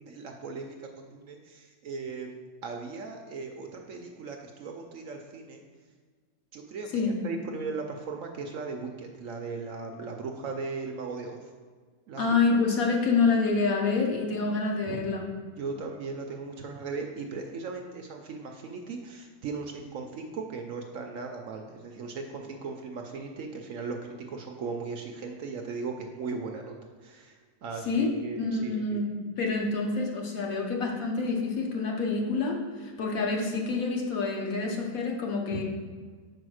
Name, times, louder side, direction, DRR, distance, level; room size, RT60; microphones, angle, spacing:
voice 1, 0.0-5.6 6.5-11.5 12.1-12.2 12.5-12.6 14.9-15.0 15.6-26.7 27.0-29.0 35.5-35.6, right 4 dB, 65° right, 3 dB, 0.9 m, -38 dB
voice 2, 12.2-15.2 27.9-29.1 29.4-35.6, left 4 dB, 65° left, 0 dB, 1.4 m, -27 dB
5.1 x 4.8 x 6.3 m, 1.6 s
omnidirectional pair, 1.7 m